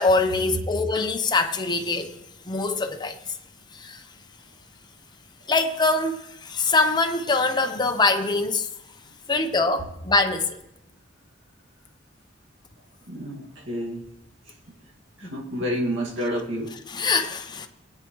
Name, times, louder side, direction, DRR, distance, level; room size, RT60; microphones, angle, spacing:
voice 1, 0.0-2.2 2.5-3.2 3.8-4.0 5.5-8.7 9.3-10.6 15.2-15.3 16.9-17.7, left 3 dB, 25° left, 0.8 m, -23 dB
voice 2, 13.1-14.0 15.2-16.8, equal, 80° right, 2.1 m, -29 dB
21.0 x 9.1 x 3.1 m
head